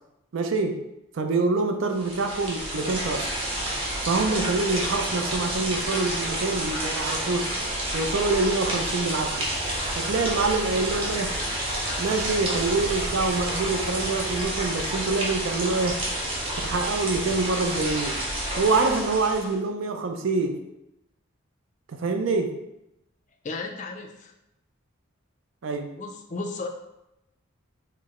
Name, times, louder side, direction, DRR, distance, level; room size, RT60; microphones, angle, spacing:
voice 1, 0.3-0.8 1.1-3.3 4.0-7.5 7.9-9.5 10.0-11.4 12.0-16.0 16.6-18.2 18.5-20.6 21.9-22.6 25.6-25.9, right 3 dB, 70° right, 5 dB, 0.4 m, -26 dB
sound 1, 1.9-19.5, right 1 dB, 25° right, 0.8 m, -29 dB
sound 2, 9.4-14.4, left 3 dB, 90° left, 0.5 m, -41 dB
voice 2, 23.4-24.3 26.0-26.7, left 3 dB, 35° left, 3 dB, 0.4 m, -34 dB
4.5 x 2.0 x 3.6 m, 0.88 s
head